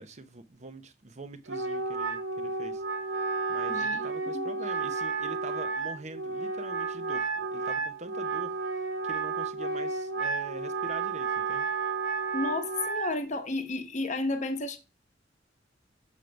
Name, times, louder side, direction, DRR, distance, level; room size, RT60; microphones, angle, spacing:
voice 1, 0.0-2.8 3.5-8.6 9.0-11.7, right 2 dB, 40° right, 0.7 m, -44 dB
Wind instrument woodwind instrument, 1.5-13.1, right 4 dB, 85° right, 1.2 m, -32 dB
voice 2, 3.7-4.5 12.3-14.8, left 2 dB, 40° left, 0.9 m, -32 dB
7.3 x 3.4 x 5.1 m
head